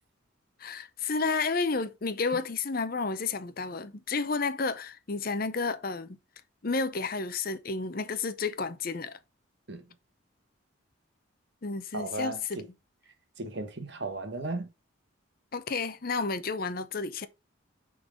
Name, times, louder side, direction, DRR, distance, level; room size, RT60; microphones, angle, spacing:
voice 1, 0.6-6.2 6.6-9.1 11.6-12.6 15.5-17.3, left 4 dB, 45° left, 0.7 m, -31 dB
voice 2, 11.9-12.7 13.4-14.7, right 2 dB, 55° right, 1.4 m, -35 dB
6.8 x 3.9 x 5.2 m
head